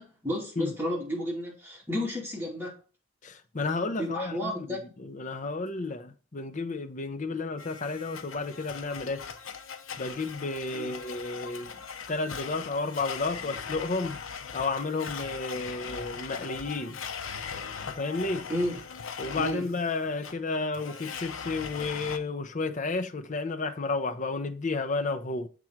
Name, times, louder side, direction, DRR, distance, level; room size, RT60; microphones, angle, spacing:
voice 1, 0.0-2.8 4.0-4.8 7.3-7.4 10.7-10.9 18.5-18.8 19.4-19.7, equal, 10° right, 2.4 m, -32 dB
voice 2, 3.2-9.2 10.0-11.8 12.1-14.2 14.5-17.0 17.9-18.5 19.2-25.5, left 3 dB, 40° left, 0.6 m, -32 dB
Domestic sounds home sounds, 7.6-22.2, left 6 dB, 85° left, 0.7 m, -40 dB
7.2 x 3.8 x 4.5 m
head